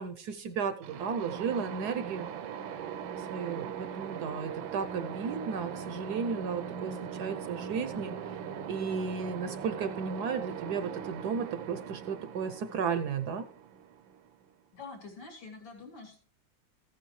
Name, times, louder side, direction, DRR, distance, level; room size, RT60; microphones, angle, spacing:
voice 1, 0.0-2.3 3.2-8.4 8.7-13.4, right 6 dB, 65° right, 9 dB, 1.1 m, -34 dB
sound 1, 0.8-14.5, right 7 dB, 80° right, 1.4 m, -40 dB
voice 2, 14.7-16.2, left 4 dB, 70° left, -2 dB, 3.3 m, -46 dB
15.0 x 9.2 x 3.1 m, 0.43 s
omnidirectional pair, 2.1 m